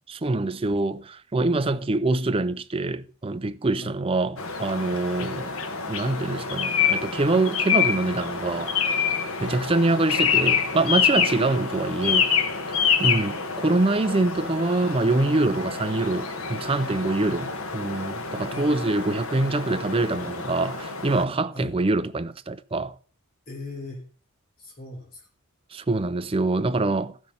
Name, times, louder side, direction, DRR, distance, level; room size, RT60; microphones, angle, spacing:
voice 1, 0.1-5.5 5.9-8.7 9.4-12.3 12.7-23.0 25.7-27.1, right 2 dB, 25° right, 0.5 m, -25 dB
voice 2, 1.6-2.0 3.8-4.0 5.1-5.4 9.4-9.6 13.0-13.2 18.5-18.7 21.5-21.7 23.5-24.0 24.6-25.3, left 1 dB, 40° left, 3.1 m, -38 dB
sound 1, 4.4-21.2, left 6 dB, 75° left, 1.3 m, -27 dB
13.5 x 6.2 x 5.4 m
head